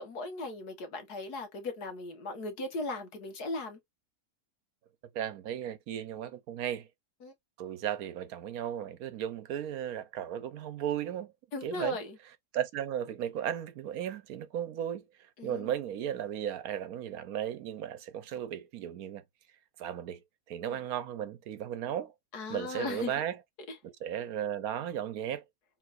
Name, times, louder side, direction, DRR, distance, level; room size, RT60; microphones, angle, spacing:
voice 1, 0.0-3.8 7.2-7.3 11.5-12.2 15.4-15.7 20.7-20.8 22.3-23.1 23.7-23.8, left 2 dB, 80° left, 1.9 m, -37 dB
voice 2, 5.1-6.9 7.6-11.3 11.6-12.0 12.5-19.2 19.8-20.2 20.5-22.1 22.5-23.4 23.8-25.4, right 10 dB, 70° right, 1.1 m, -35 dB
4.7 x 3.7 x 2.4 m
omnidirectional pair, 1.7 m